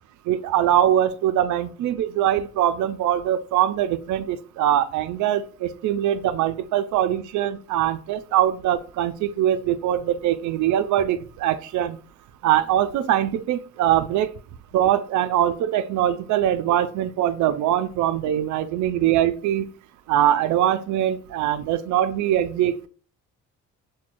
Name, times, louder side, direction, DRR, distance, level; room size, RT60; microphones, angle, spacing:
voice 1, 0.3-12.0 12.4-14.3 14.7-19.7 20.1-22.9, right 11 dB, 75° right, 0.4 m, -22 dB
6.0 x 2.2 x 2.5 m
cardioid pair, 90°, 30 cm